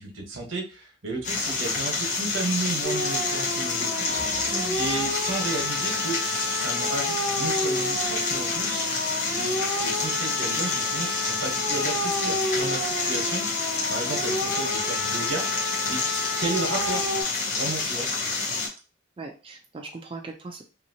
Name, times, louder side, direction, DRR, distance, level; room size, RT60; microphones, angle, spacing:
voice 1, 0.0-4.1 4.8-8.9 9.3-13.5 13.9-15.5 15.9-16.0 16.4-17.0 17.5-18.1, right 3 dB, 80° right, 1 dB, 1.1 m, -33 dB
sound 1, 1.2-18.7, left 4 dB, 40° left, 0.7 m, -28 dB
sound 2, 2.8-17.2, left 1 dB, 80° left, 1.2 m, -31 dB
sound 3, 4.0-6.6, right 2 dB, 65° right, 0.8 m, -45 dB
voice 2, 4.5-4.8 12.2-12.3 17.5-17.7 19.2-20.6, right 3 dB, 25° right, 1 dB, 0.3 m, -38 dB
2.8 x 2.7 x 2.7 m, 0.33 s
head